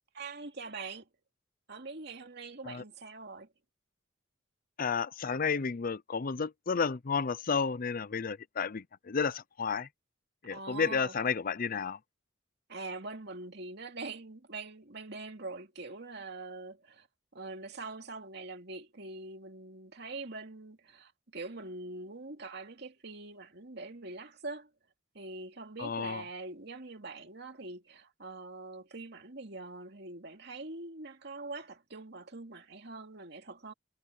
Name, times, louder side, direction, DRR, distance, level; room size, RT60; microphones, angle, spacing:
voice 1, 0.1-1.1 1.7-3.5 10.5-11.1 12.7-17.1 17.3-24.7 25.1-33.7, right 3 dB, 55° right, 2.5 m, -43 dB
voice 2, 4.8-9.9 10.4-12.0 25.8-26.2, left 5 dB, 45° left, 0.6 m, -32 dB
head